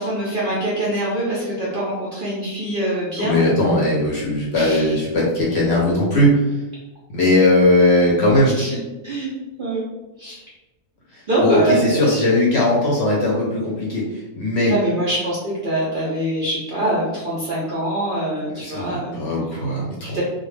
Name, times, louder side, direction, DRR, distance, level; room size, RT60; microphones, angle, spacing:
voice 1, 0.0-3.4 4.5-5.0 8.6-8.7 9.0-9.3 9.6-9.9 10.2-10.4 11.3-12.1 14.6-19.2 20.0-20.2, right 1 dB, 60° right, -7 dB, 0.6 m, -24 dB
voice 2, 3.2-6.3 7.1-8.6 11.4-14.0 14.4-14.7 18.5-20.2, left 1 dB, 65° left, -4 dB, 0.7 m, -18 dB
2.2 x 2.1 x 3.1 m, 1.1 s
omnidirectional pair, 1.4 m